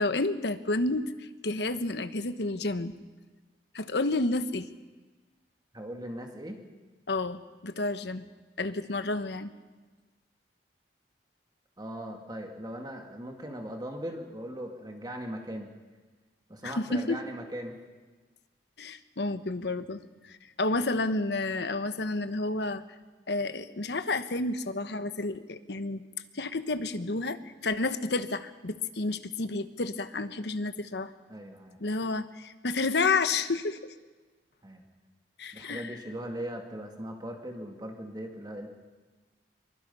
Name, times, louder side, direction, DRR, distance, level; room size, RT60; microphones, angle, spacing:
voice 1, 0.0-2.9 3.7-4.7 7.1-8.3 8.6-9.5 16.6-17.2 18.8-20.0 20.3-22.8 23.3-26.0 26.3-31.1 31.8-33.9 35.4-35.9, left 3 dB, 70° left, 10 dB, 1.1 m, -30 dB
voice 2, 5.7-6.6 11.8-15.7 16.5-17.8 31.3-31.8 34.6-34.8 35.5-38.7, equal, 25° right, 2 dB, 2.1 m, -39 dB
24.5 x 23.5 x 5.5 m, 1.3 s
head